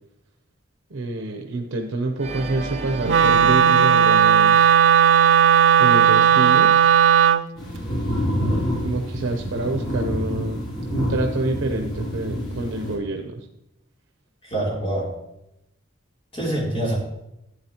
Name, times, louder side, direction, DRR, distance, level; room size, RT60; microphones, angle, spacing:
voice 1, 0.9-4.7 5.8-6.9 8.8-13.5, right 2 dB, 80° right, 4 dB, 0.8 m, -27 dB
Organ, 2.2-5.3, right 3 dB, 35° right, 0.9 m, -35 dB
Wind instrument woodwind instrument, 3.1-7.4, right 8 dB, 65° right, 0.4 m, -15 dB
sound 1, 7.6-13.0, equal, 80° left, 3.4 m, -27 dB
voice 2, 14.4-15.1 16.3-17.0, right 1 dB, 30° left, -4 dB, 3.3 m, -25 dB
11.0 x 8.5 x 2.9 m, 0.86 s
head